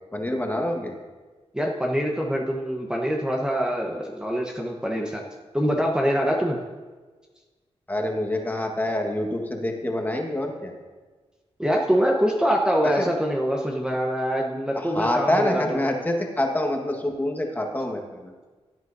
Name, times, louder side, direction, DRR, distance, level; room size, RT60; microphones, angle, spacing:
voice 1, 0.1-0.9 7.9-10.7 12.8-13.1 14.7-18.3, left 1 dB, 15° left, 2 dB, 1.5 m, -26 dB
voice 2, 1.5-5.2 5.5-6.6 11.6-15.9, equal, 5° right, -1 dB, 1.0 m, -24 dB
16.5 x 9.4 x 2.7 m, 1.3 s
cardioid pair, 80°, 11 cm